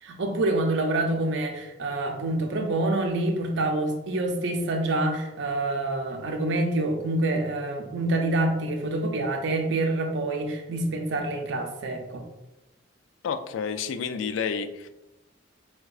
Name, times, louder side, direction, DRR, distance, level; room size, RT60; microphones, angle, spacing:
voice 1, 0.0-12.2, right 2 dB, 65° right, 4 dB, 0.5 m, -27 dB
voice 2, 13.2-14.9, left 6 dB, 80° left, 9 dB, 0.3 m, -30 dB
4.7 x 2.2 x 2.3 m, 1.0 s
head